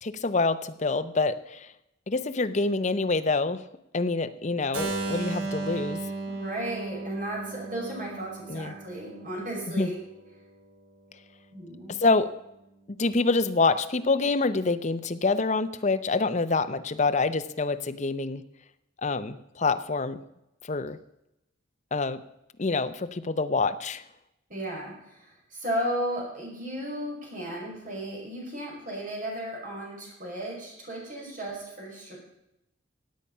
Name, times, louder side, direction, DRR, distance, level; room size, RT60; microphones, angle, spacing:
voice 1, 0.0-1.7 2.1-3.6 3.9-6.0 8.5-8.7 9.7-9.9 11.9-12.3 12.9-18.4 19.0-20.2 20.6-21.0 21.9-22.2 22.6-24.0, left 3 dB, 35° left, 11 dB, 0.7 m, -26 dB
Keyboard (musical), 4.7-10.6, right 3 dB, 75° right, 3.1 m, -35 dB
voice 2, 6.3-10.0 11.5-12.0 24.5-32.2, right 1 dB, 40° right, -2 dB, 5.5 m, -35 dB
17.0 x 8.5 x 5.5 m, 0.87 s
head